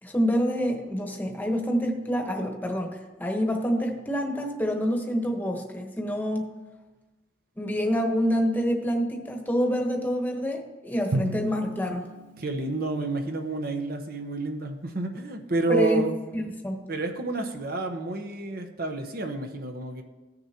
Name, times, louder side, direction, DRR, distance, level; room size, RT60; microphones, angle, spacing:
voice 1, 0.0-6.5 7.6-12.0 15.7-16.0 16.3-16.8, equal, 10° left, 2 dB, 1.1 m, -27 dB
Drum, 11.1-13.3, right 1 dB, 85° right, 0.6 m, -34 dB
voice 2, 12.4-16.1 16.9-20.0, right 2 dB, 55° right, 5 dB, 1.0 m, -29 dB
15.0 x 6.5 x 2.9 m, 1.2 s
head